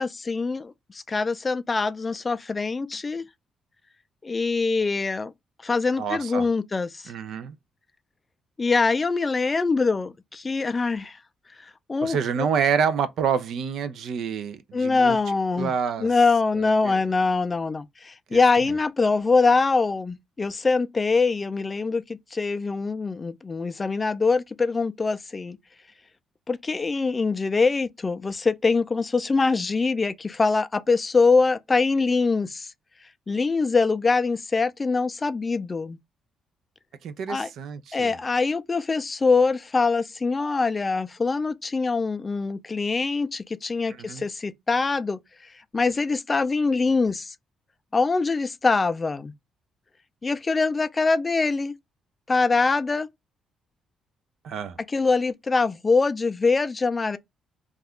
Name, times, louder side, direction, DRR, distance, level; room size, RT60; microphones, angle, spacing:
voice 1, 0.0-3.2 4.2-5.3 5.6-7.0 8.6-11.2 11.9-12.5 14.7-15.7 16.0-25.6 26.5-32.7 33.3-36.0 37.3-37.5 37.9-45.2 45.7-47.3 47.9-49.3 50.2-51.7 52.3-53.1 54.9-57.2, left 4 dB, 30° left, 0.3 m, -23 dB
voice 2, 6.0-6.5 7.1-7.6 12.0-15.2 15.6-16.1 16.6-17.0 18.3-18.4 37.0-38.2 43.9-44.3 54.4-54.8, right 7 dB, 70° right, 0.4 m, -28 dB
2.4 x 2.2 x 3.4 m
cardioid pair, 90°, 0 cm